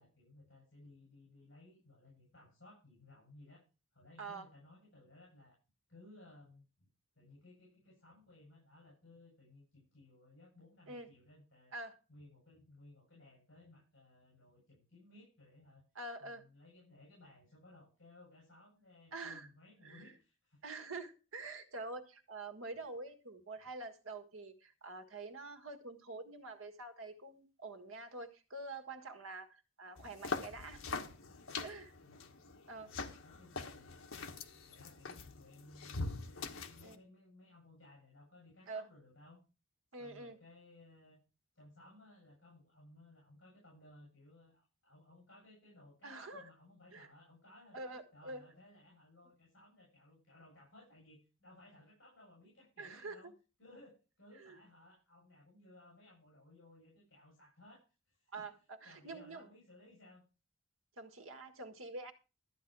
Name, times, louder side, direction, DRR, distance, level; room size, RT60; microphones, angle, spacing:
voice 1, 0.0-3.6 3.9-5.6 5.9-6.9 7.1-11.7 12.1-15.9 16.2-20.6 32.0-32.3 32.8-34.1 34.7-36.1 36.6-39.4 40.0-41.2 41.5-47.8 48.1-53.3 53.6-60.2, left 2 dB, 60° left, 7.6 m, -60 dB
voice 2, 15.9-16.4 19.1-19.5 19.8-20.0 20.6-30.8 31.6-31.9 32.7-32.9 36.8-37.0 38.7-38.8 39.9-40.4 46.0-46.5 46.9-47.1 47.7-48.4 52.8-53.3 54.4-54.6 58.3-58.5 58.8-59.5 61.0-62.1, right 3 dB, 85° right, 1.7 m, -46 dB
sound 1, 30.0-36.9, left 4 dB, 80° left, 1.3 m, -43 dB
13.5 x 9.3 x 4.7 m
head